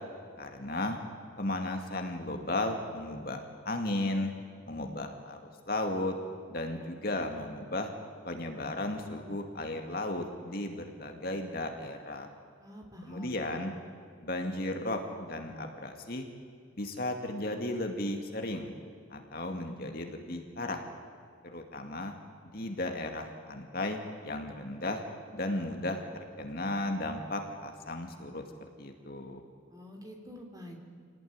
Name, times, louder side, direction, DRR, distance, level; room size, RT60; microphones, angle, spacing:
voice 1, 0.4-1.0 1.4-4.3 4.7-6.1 6.5-7.9 8.2-12.3 13.0-13.7 14.2-16.3 16.8-18.7 19.1-20.8 21.5-22.1 22.5-25.0 25.3-26.0 26.4-28.4 28.8-29.4, left 1 dB, 45° left, 4 dB, 2.3 m, -35 dB
voice 2, 12.6-13.4 29.7-30.8, equal, 20° right, 2 dB, 3.3 m, -46 dB
27.5 x 18.5 x 9.7 m, 2.3 s
head